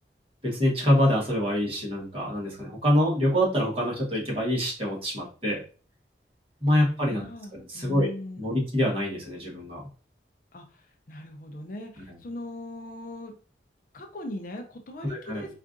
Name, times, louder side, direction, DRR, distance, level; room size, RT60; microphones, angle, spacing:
voice 1, 0.4-5.6 6.6-7.2 7.5-8.1 8.4-9.8 15.1-15.4, equal, 30° right, -4 dB, 1.3 m, -25 dB
voice 2, 6.8-8.6 10.5-10.6 11.1-13.3 13.9-15.5, left 1 dB, 50° left, 4 dB, 0.5 m, -40 dB
4.5 x 2.5 x 2.5 m, 0.38 s
head